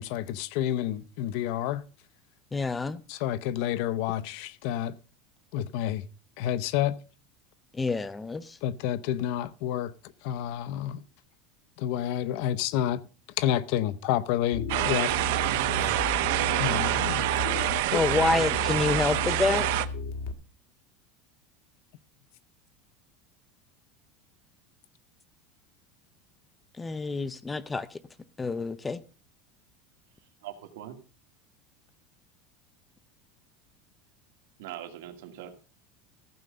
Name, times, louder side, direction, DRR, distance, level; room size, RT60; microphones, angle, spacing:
voice 1, 0.0-1.8 3.1-4.9 5.5-6.0 6.4-7.0 8.6-9.9 10.2-11.0 11.8-13.0 13.4-15.1 15.8-15.9 16.6-17.2 17.9-18.0, left 11 dB, 55° left, 0.6 m, -29 dB
voice 2, 2.5-3.0 7.7-8.6 17.9-19.7 26.8-28.0 28.4-29.0, left 3 dB, 10° left, 0.4 m, -28 dB
sound 1, 14.5-20.3, left 4 dB, 70° left, 1.4 m, -34 dB
sound 2, 14.7-19.9, right 15 dB, 65° right, 0.8 m, -27 dB
voice 3, 30.4-31.0 34.6-35.7, right 11 dB, 80° right, 1.9 m, -42 dB
14.5 x 5.2 x 6.7 m
supercardioid pair, 175°, 0 cm